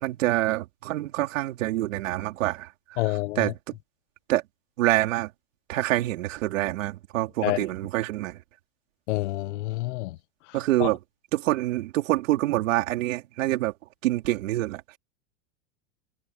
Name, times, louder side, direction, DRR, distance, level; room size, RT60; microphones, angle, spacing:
voice 1, 0.0-2.7 3.4-3.7 4.3-4.4 4.8-5.3 5.7-8.4 10.5-11.0 11.3-13.7 14.0-14.8, right 16 dB, 75° right, 4.2 m, -26 dB
voice 2, 3.0-3.5 7.4-7.6 9.1-10.2 10.8-10.9, left 18 dB, 65° left, 1.1 m, -28 dB
supercardioid pair, 150°, 39 cm